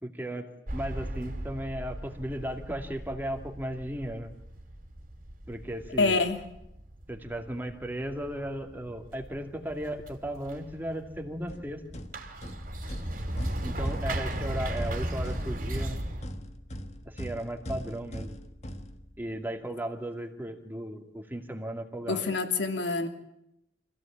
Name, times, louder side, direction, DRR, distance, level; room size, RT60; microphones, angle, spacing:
voice 1, 0.0-4.3 5.5-6.2 7.1-11.8 13.6-16.0 17.0-18.4 19.2-22.3, right 1 dB, 10° right, 4 dB, 2.4 m, -36 dB
sound 1, 0.7-16.2, right 1 dB, 50° right, 2.9 m, -37 dB
voice 2, 6.0-6.4 22.1-23.1, left 3 dB, 85° left, 6 dB, 2.7 m, -26 dB
sound 2, 11.5-19.5, equal, 40° left, 1.5 m, -41 dB
26.0 x 16.0 x 8.8 m, 0.82 s
head